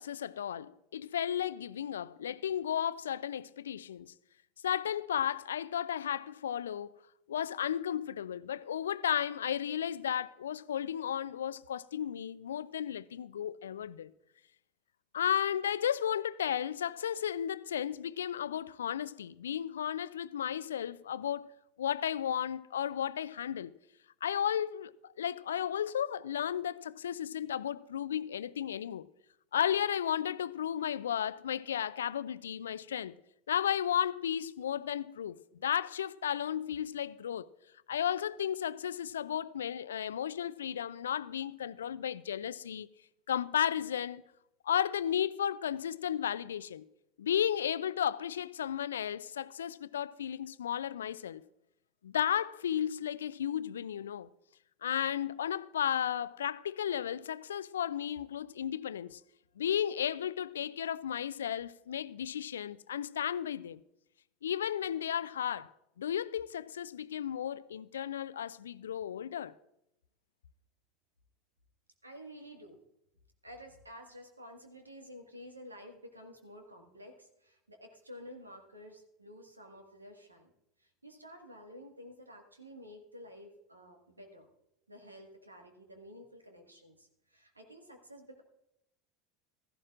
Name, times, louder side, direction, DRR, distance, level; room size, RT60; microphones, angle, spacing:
voice 1, 0.0-4.1 4.6-6.9 7.3-14.1 15.1-21.5 21.8-23.7 24.2-29.1 29.5-33.2 33.5-37.5 37.9-42.9 43.3-44.2 44.6-46.8 47.2-51.4 52.0-54.3 54.8-59.2 59.6-63.8 64.4-65.7 66.0-69.5, left 9 dB, 75° left, 0.4 m, -34 dB
voice 2, 72.0-72.8 73.4-80.5 80.8-84.5 84.9-88.4, equal, 90° right, 1.7 m, -51 dB
15.5 x 14.5 x 2.5 m
figure-of-eight pair, 75°, 0 cm